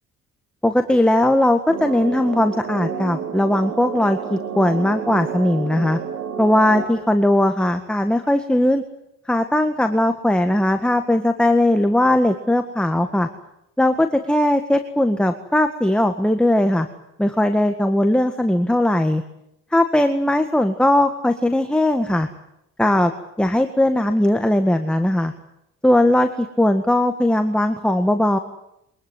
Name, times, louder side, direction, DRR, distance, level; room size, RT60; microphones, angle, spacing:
voice 1, 0.6-6.0 6.4-8.8 9.3-13.3 13.8-16.9 17.2-19.2 19.7-22.3 22.8-23.1 23.4-25.3 25.8-28.4, left 1 dB, 5° left, 7 dB, 1.7 m, -19 dB
sound 1, 1.7-6.8, right 7 dB, 75° right, 4.9 m, -30 dB
23.5 x 21.0 x 9.8 m, 0.81 s
cardioid pair, 90°, 30 cm